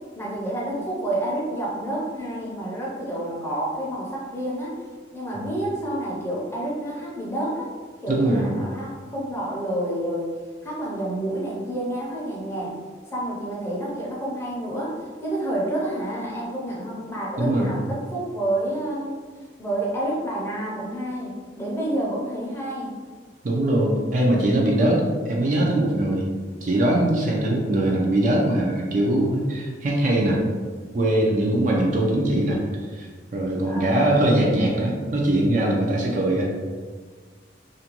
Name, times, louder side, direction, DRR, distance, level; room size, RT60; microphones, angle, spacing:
voice 1, 0.2-4.8 5.1-7.7 8.0-10.3 10.6-12.8 13.1-19.2 19.6-22.9 33.6-34.2, right 1 dB, 15° left, -5 dB, 0.5 m, -29 dB
voice 2, 8.1-8.5 17.4-17.7 23.4-26.3 26.6-30.4 30.9-32.6 32.9-33.1 33.3-36.5, right 1 dB, 40° right, -2 dB, 0.4 m, -21 dB
2.5 x 2.2 x 2.8 m, 1.5 s
head